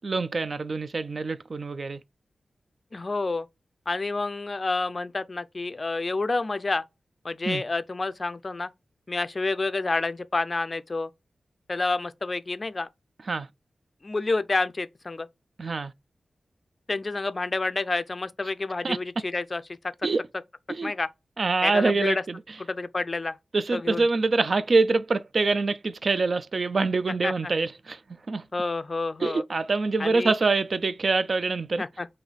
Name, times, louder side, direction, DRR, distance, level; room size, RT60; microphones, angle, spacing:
voice 1, 0.0-2.0 7.5-7.6 13.3-13.5 15.6-15.9 18.8-19.0 20.0-20.2 20.7-20.9 21.4-22.4 23.5-28.0 28.3-28.4 29.2-31.8, right 3 dB, 55° right, 0.3 m, -25 dB
voice 2, 2.9-3.5 3.9-6.8 7.2-8.7 9.1-11.1 11.7-12.9 14.0-15.3 16.9-19.8 20.8-21.1 21.6-22.2 22.6-23.4 23.7-24.1 27.2-27.5 28.5-29.4 30.0-30.3 31.8-32.1, left 3 dB, 40° left, 0.4 m, -29 dB
3.2 x 2.7 x 3.9 m
wide cardioid pair, 75°, 0 cm